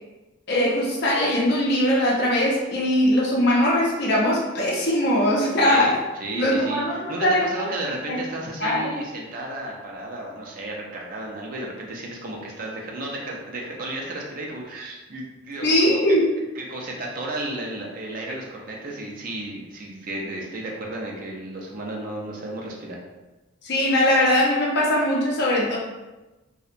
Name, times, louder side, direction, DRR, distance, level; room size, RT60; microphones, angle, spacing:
voice 1, 0.5-5.9 6.3-7.5 8.1-8.2 8.6-9.0 15.6-16.2 23.6-25.8, left 1 dB, 55° left, -3 dB, 0.6 m, -21 dB
voice 2, 5.6-16.2 16.5-23.0, right 1 dB, 45° right, -1 dB, 0.4 m, -33 dB
2.6 x 2.0 x 2.4 m, 1.1 s
head